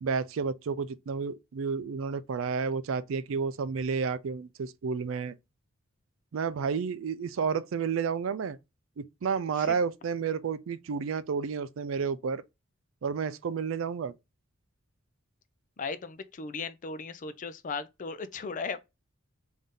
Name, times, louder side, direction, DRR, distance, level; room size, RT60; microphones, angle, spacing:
voice 1, 0.0-5.3 6.3-8.6 9.0-12.4 13.0-14.1, right 5 dB, 70° right, 0.4 m, -31 dB
voice 2, 15.8-18.8, left 4 dB, 40° left, 0.4 m, -37 dB
3.7 x 2.7 x 3.4 m
head